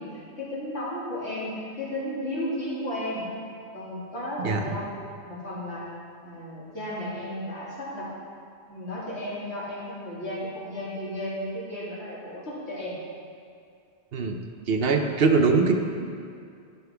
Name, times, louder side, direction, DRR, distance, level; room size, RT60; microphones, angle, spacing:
voice 1, 0.0-3.3 3.7-5.8 6.2-8.1 8.7-13.0, left 1 dB, 85° left, -8 dB, 2.7 m, -34 dB
voice 2, 14.7-15.8, right 4 dB, 65° right, 4 dB, 0.9 m, -22 dB
13.0 x 5.5 x 3.4 m, 2.4 s
omnidirectional pair, 1.1 m